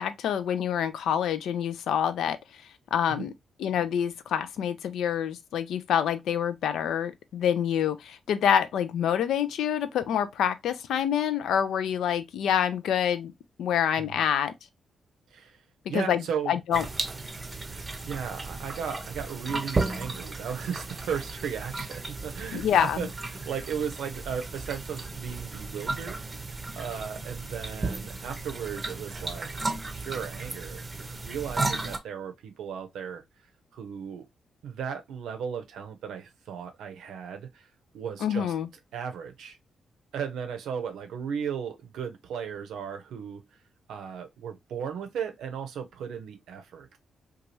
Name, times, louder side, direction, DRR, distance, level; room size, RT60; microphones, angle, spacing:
voice 1, 0.0-2.4 2.9-3.3 3.6-13.3 13.6-14.5 15.9-16.8 22.5-23.0 38.2-38.7, left 9 dB, 75° left, 0.3 m, -26 dB
voice 2, 15.9-16.5 18.1-29.5 29.9-33.2 33.7-34.2 34.6-37.7 37.9-38.5 38.9-39.6 40.1-43.4 43.9-47.0, right 7 dB, 75° right, 0.6 m, -36 dB
bathtub water running out, 16.7-32.0, right 3 dB, 35° right, 0.6 m, -34 dB
2.8 x 2.3 x 3.0 m
hypercardioid pair, 40°, 0 cm